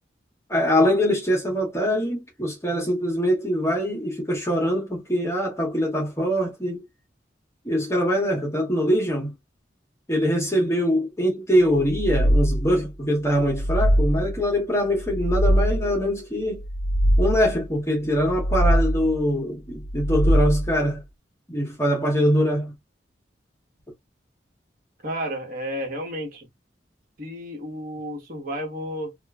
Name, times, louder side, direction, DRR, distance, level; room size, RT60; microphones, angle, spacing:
voice 1, 0.5-6.8 7.6-9.4 10.1-16.6 17.2-21.0 21.5-22.7, equal, 15° left, 0.8 m, -23 dB
sound 1, 11.8-12.9 13.3-14.5 14.9-16.0 16.5-17.6 18.1-19.2 19.8-20.9, equal, 75° left, 0.5 m, -22 dB
voice 2, 25.0-26.5 27.2-29.2, equal, 50° right, 1.2 m, -32 dB
3.0 x 2.3 x 2.2 m
head